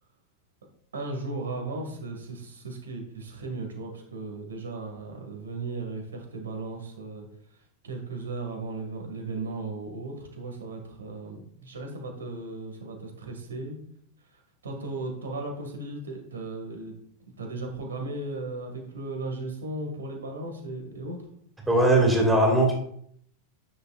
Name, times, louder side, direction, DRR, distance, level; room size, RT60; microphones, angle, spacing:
voice 1, 0.9-7.3 7.5-13.8 14.3-16.9 17.4-21.2, right 2 dB, 70° right, 3 dB, 2.0 m, -36 dB
voice 2, 21.7-22.7, right 1 dB, 10° right, 1 dB, 2.3 m, -20 dB
9.6 x 6.4 x 2.5 m, 0.66 s
figure-of-eight pair, 90°, 0 cm